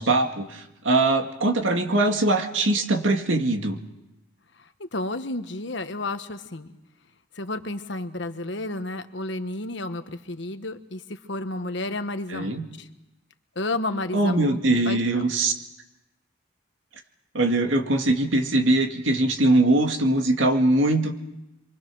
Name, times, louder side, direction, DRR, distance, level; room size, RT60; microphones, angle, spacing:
voice 1, 0.0-3.8 12.3-12.6 14.1-15.5 17.3-21.1, right 2 dB, 75° right, 4 dB, 2.1 m, -22 dB
voice 2, 4.6-6.7 7.3-12.9 13.5-14.6 14.8-15.0, left 2 dB, 65° left, 8 dB, 1.3 m, -31 dB
27.0 x 24.0 x 6.3 m, 0.95 s
head